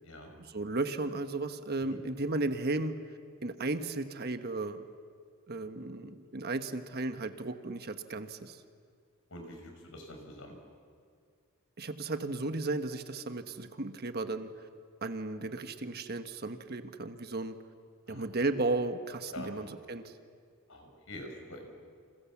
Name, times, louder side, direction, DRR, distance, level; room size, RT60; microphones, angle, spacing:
voice 1, 0.4-2.9 3.4-4.8 5.5-8.6 11.8-14.5 15.0-17.6 18.1-20.1, right 2 dB, 45° right, 8 dB, 1.3 m, -34 dB
voice 2, 9.3-10.6 18.1-18.3 19.3-19.5 20.7-21.7, left 1 dB, 65° left, 4 dB, 5.5 m, -45 dB
29.5 x 27.5 x 7.3 m, 2.1 s
head